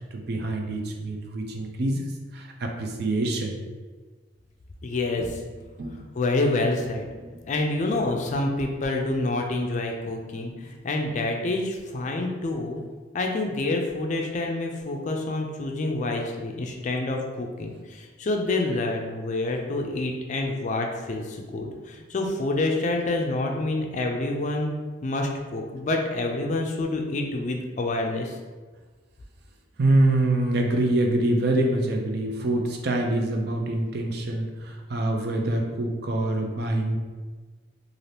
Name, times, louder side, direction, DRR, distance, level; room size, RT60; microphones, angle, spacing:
voice 1, 0.1-2.0 2.3-3.5 5.2-5.3 5.8-6.0 7.2-7.4 29.8-37.0, right 2 dB, 60° right, 2 dB, 0.4 m, -25 dB
voice 2, 4.8-5.4 6.1-7.1 7.5-12.8 13.1-24.7 25.0-28.4, left 2 dB, 40° left, 2 dB, 0.4 m, -27 dB
2.7 x 2.5 x 3.3 m, 1.4 s
head